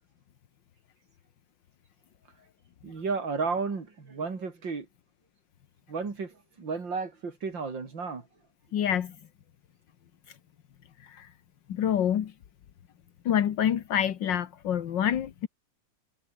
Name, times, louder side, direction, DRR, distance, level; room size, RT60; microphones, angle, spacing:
voice 1, 2.8-4.9 5.9-8.3, right 4 dB, 85° right, 4.0 m, -33 dB
voice 2, 8.7-9.2 11.0-11.3 11.7-12.3 13.3-15.5, left 9 dB, 80° left, 1.9 m, -27 dB
omnidirectional pair, 2.0 m